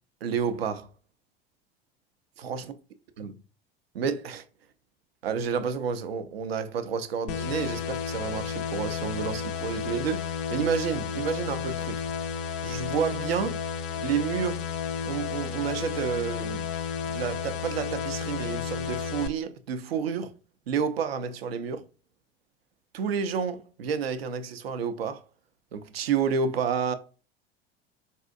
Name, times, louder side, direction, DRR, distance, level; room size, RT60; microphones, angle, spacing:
voice 1, 0.2-0.9 2.4-2.7 3.2-3.4 3.9-4.5 5.2-12.0 12.6-13.6 14.0-14.7 15.0-16.7 17.0-20.3 20.7-21.8 22.9-25.2 25.7-26.9, right 6 dB, 75° right, 0.5 m, -30 dB
sound 1, 7.3-19.3, left 6 dB, 50° left, 0.5 m, -32 dB
4.1 x 2.6 x 2.5 m
figure-of-eight pair, 70°, 30 cm